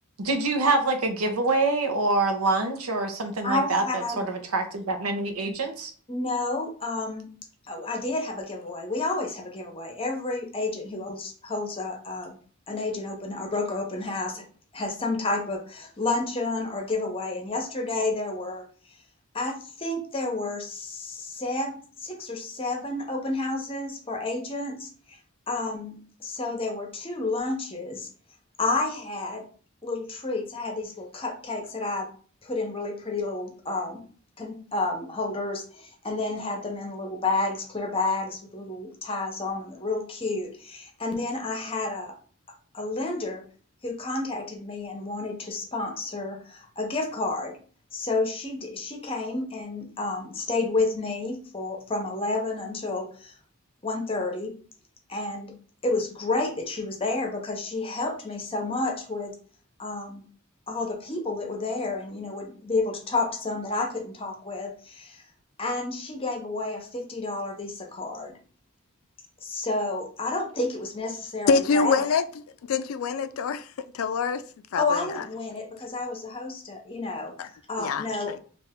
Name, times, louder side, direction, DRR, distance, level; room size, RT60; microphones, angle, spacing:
voice 1, 0.2-5.9, right 2 dB, 90° right, 0.7 m, -25 dB
voice 2, 3.4-4.3 6.1-7.3 7.7-12.3 12.7-14.4 14.7-18.6 19.3-25.2 25.5-28.1 28.6-29.4 29.8-32.1 32.4-34.0 34.4-42.2 42.7-43.4 43.8-47.6 47.9-53.3 53.8-54.5 55.1-55.5 55.8-59.4 59.8-60.2 60.7-65.2 65.6-68.4 69.4-72.0 74.8-77.3 77.7-78.3, left 2 dB, 25° left, 0.7 m, -30 dB
voice 3, 71.5-72.2 72.7-73.7 73.9-74.4 74.7-75.2 77.4-77.5 77.8-78.4, left 5 dB, 75° left, 0.3 m, -25 dB
3.3 x 2.5 x 3.5 m
head